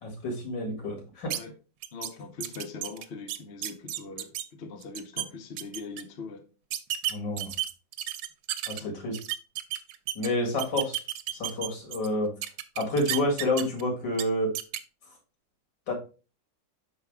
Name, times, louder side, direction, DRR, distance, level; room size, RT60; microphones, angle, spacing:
voice 1, 0.0-1.3 7.1-7.5 8.7-9.2 10.2-11.0 11.3-12.3 12.8-14.5 15.9-16.0, left 1 dB, 75° left, 2.6 m, -29 dB
sound 1, 1.3-1.4 1.8-2.1 2.4-4.4 4.8-5.3 5.6-6.0 6.7-8.8 9.1-10.3 10.6-12.1 12.4-13.8 14.1-14.2 14.6-14.8, right 12 dB, 90° right, 1.3 m, -32 dB
voice 2, 1.9-6.4 8.8-9.0, left 4 dB, 45° left, 0.9 m, -41 dB
5.9 x 4.9 x 3.5 m
omnidirectional pair, 2.0 m